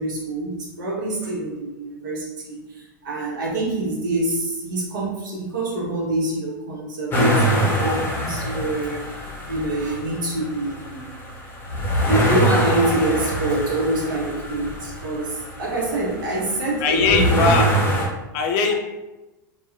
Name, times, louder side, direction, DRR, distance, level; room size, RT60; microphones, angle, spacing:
voice 1, 0.0-9.0 9.5-11.1 12.1-17.4 18.2-18.3 18.7-18.8, right 2 dB, 70° right, -3 dB, 0.9 m, -25 dB
sound 1, 7.1-18.1, right 1 dB, 20° left, 0.7 m, -24 dB
voice 2, 16.8-17.7 18.3-18.7, left 4 dB, 50° left, 4 dB, 0.4 m, -20 dB
2.9 x 2.2 x 2.3 m, 1.1 s
hypercardioid pair, 95°, 11 cm